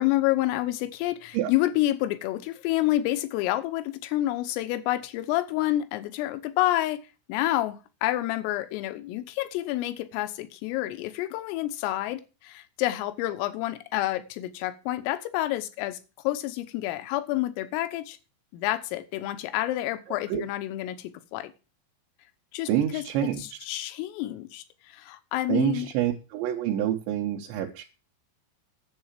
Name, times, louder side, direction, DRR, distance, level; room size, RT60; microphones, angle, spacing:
voice 1, 0.0-7.0 7.3-16.0 16.3-18.2 18.5-21.5 22.5-25.9, left 15 dB, 85° left, 13 dB, 3.6 m, -29 dB
voice 2, 22.7-23.4 25.5-27.8, right 11 dB, 70° right, 1 dB, 3.2 m, -27 dB
10.5 x 7.8 x 7.4 m, 0.32 s
omnidirectional pair, 5.8 m